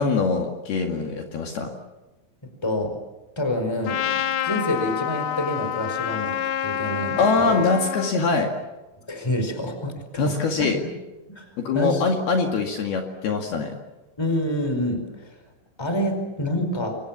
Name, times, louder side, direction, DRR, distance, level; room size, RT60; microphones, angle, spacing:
voice 1, 0.0-1.7 7.2-8.5 10.2-10.8 11.6-13.7, left 4 dB, 60° left, 2 dB, 3.8 m, -23 dB
voice 2, 2.6-3.0 3.4-7.6 9.1-10.7 11.3-12.0 14.2-15.4 15.8-17.0, left 1 dB, 5° left, 6 dB, 4.2 m, -27 dB
Trumpet, 3.9-8.1, left 10 dB, 80° left, 1.9 m, -28 dB
29.0 x 23.5 x 7.4 m, 1.1 s
omnidirectional pair, 5.4 m